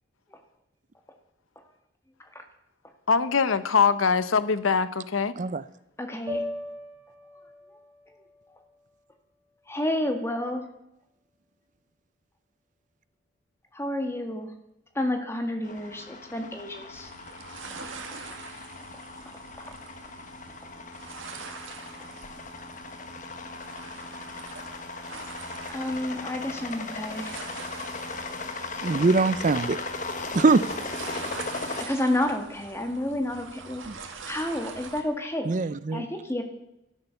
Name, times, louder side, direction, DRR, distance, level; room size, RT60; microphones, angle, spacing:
voice 1, 3.1-5.3, left 5 dB, 90° left, 14 dB, 0.8 m, -23 dB
voice 2, 6.0-6.4 8.1-8.2 9.7-10.6 13.7-14.5 14.9-17.1 19.5-19.6 25.7-27.4 31.8-35.5 35.9-36.4, left 1 dB, 15° left, 4 dB, 1.6 m, -30 dB
sound 1, 6.3-10.5, left 1 dB, 15° right, 4.6 m, -40 dB
sound 2, 15.6-31.9, left 3 dB, 40° left, 1.3 m, -38 dB
sound 3, 16.9-35.0, right 5 dB, 80° right, 1.9 m, -44 dB
voice 3, 28.8-29.8 30.3-30.6 33.9-34.0 35.5-36.0, right 3 dB, 40° right, 16 dB, 0.4 m, -22 dB
13.0 x 11.0 x 7.0 m, 0.86 s
head